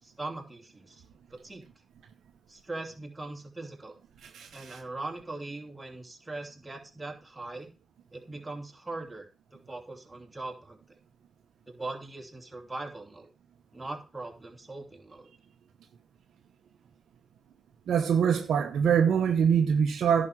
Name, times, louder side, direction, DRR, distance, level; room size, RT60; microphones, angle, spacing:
voice 1, 0.0-1.0 1.3-1.6 2.5-4.0 4.5-7.7 8.1-10.8 11.7-13.3 13.7-15.3, right 2 dB, 20° right, 3.0 m, -40 dB
voice 2, 4.2-4.8 17.9-20.3, right 7 dB, 75° right, 0.9 m, -24 dB
11.0 x 5.2 x 5.8 m
supercardioid pair, 45°, 0 cm